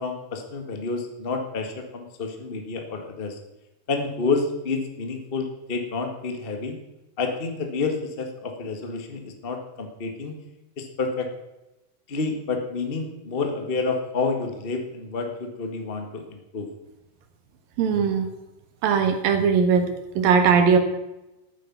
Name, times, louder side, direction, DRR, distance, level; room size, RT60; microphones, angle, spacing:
voice 1, 0.0-3.4 3.9-6.8 7.2-10.3 10.8-11.3 12.1-16.7, left 4 dB, 60° left, 4 dB, 0.5 m, -29 dB
voice 2, 17.8-18.3 18.8-19.9 20.2-20.8, right 6 dB, 80° right, 7 dB, 3.3 m, -19 dB
13.5 x 9.3 x 6.0 m, 0.97 s
omnidirectional pair, 4.0 m